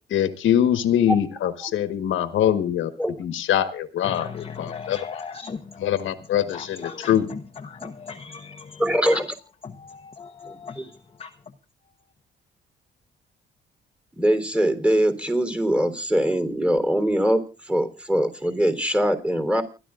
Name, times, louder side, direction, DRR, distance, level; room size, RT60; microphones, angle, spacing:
voice 1, 0.1-2.9 3.2-4.3 4.6-5.0 5.8-7.3, left 10 dB, 75° left, 1.3 m, -23 dB
voice 2, 4.0-8.9 9.1-9.2 9.6-11.6, left 5 dB, 30° left, 1.0 m, -38 dB
voice 3, 8.8-9.3 10.5-10.8 14.2-19.6, equal, 5° right, 3.4 m, -22 dB
29.5 x 11.5 x 2.5 m
cardioid pair, 90°, 20 cm